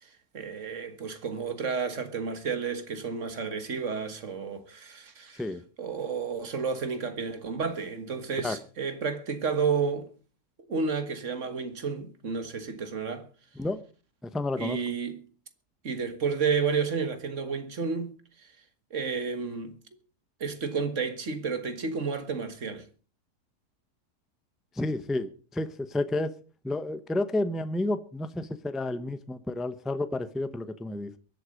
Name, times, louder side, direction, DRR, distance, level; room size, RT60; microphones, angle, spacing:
voice 1, 0.0-5.4 5.8-10.1 10.7-13.3 14.6-15.3 15.8-18.5 18.9-19.8 20.4-22.9 28.9-29.0, right 5 dB, 50° right, 1.8 m, -31 dB
voice 2, 14.2-14.8 24.7-26.3 26.6-31.2, left 2 dB, ahead, 0.5 m, -31 dB
23.0 x 8.0 x 5.2 m
omnidirectional pair, 1.7 m